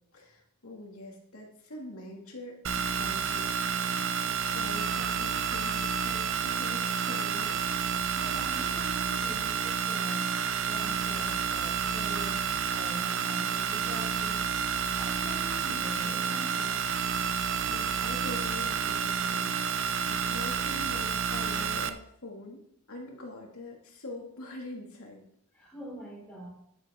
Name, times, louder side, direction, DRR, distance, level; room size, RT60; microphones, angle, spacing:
voice 1, 0.1-3.5 4.5-7.8 17.7-22.6 22.9-25.2, left 2 dB, 80° left, -1 dB, 2.3 m, -44 dB
sound 1, 2.6-21.9, right 6 dB, 60° right, 0.6 m, -30 dB
voice 2, 8.1-10.3 10.7-12.4 12.7-14.4 14.9-16.8 25.5-26.5, right 1 dB, 5° left, -6 dB, 5.3 m, -44 dB
11.0 x 10.5 x 3.7 m, 0.74 s
head